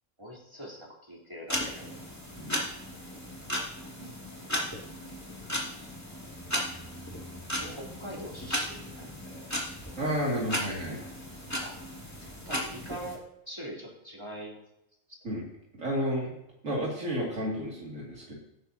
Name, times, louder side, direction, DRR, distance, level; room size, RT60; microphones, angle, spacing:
voice 1, 0.2-2.0 3.8-4.1 5.2-5.3 7.6-9.5 11.0-11.1 11.6-11.8 12.2-14.6 16.0-16.1, right 1 dB, 20° right, -4 dB, 3.6 m, -43 dB
sound 1, 1.5-13.2, equal, 10° left, 2.4 m, -36 dB
voice 2, 10.0-11.0 15.2-15.4 15.8-16.3 16.6-18.3, equal, 75° right, -4 dB, 3.0 m, -31 dB
18.0 x 9.7 x 2.9 m, 0.83 s
omnidirectional pair, 1.4 m